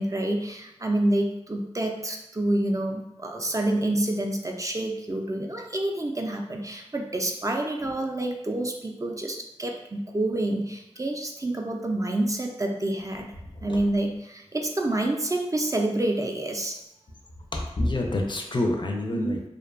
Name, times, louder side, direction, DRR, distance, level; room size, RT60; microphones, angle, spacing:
voice 1, 0.0-13.3 13.6-16.8 19.1-19.4, right 1 dB, 30° right, 2 dB, 0.3 m, -28 dB
voice 2, 17.5-19.4, left 2 dB, 45° left, 1 dB, 0.4 m, -27 dB
2.5 x 2.2 x 2.4 m, 0.89 s
cardioid pair, 40°, 11 cm